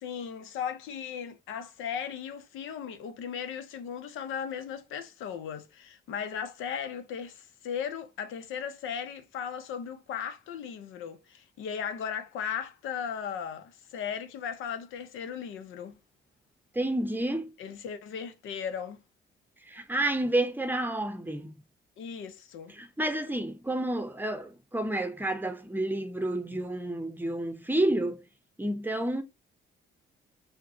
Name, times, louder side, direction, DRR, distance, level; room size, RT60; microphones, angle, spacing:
voice 1, 0.0-16.0 17.6-19.0 22.0-22.7, left 7 dB, 85° left, 0.6 m, -37 dB
voice 2, 16.7-17.5 19.7-21.5 22.7-28.2 28.6-29.2, right 1 dB, 10° right, 0.7 m, -30 dB
5.7 x 2.1 x 2.7 m
cardioid pair, 90°, 20 cm